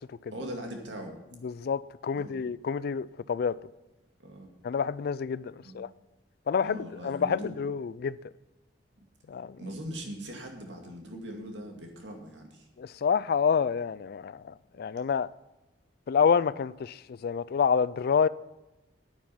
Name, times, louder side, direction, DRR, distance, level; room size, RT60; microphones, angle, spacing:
voice 1, 0.3-1.2 2.1-2.4 4.2-4.5 5.6-5.9 6.6-7.7 9.6-12.7, right 1 dB, 80° right, 2.2 m, -41 dB
voice 2, 1.4-3.6 4.6-5.9 6.5-8.2 9.3-9.6 12.8-15.3 16.1-18.3, left 6 dB, 55° left, 0.3 m, -28 dB
9.5 x 9.3 x 5.7 m
head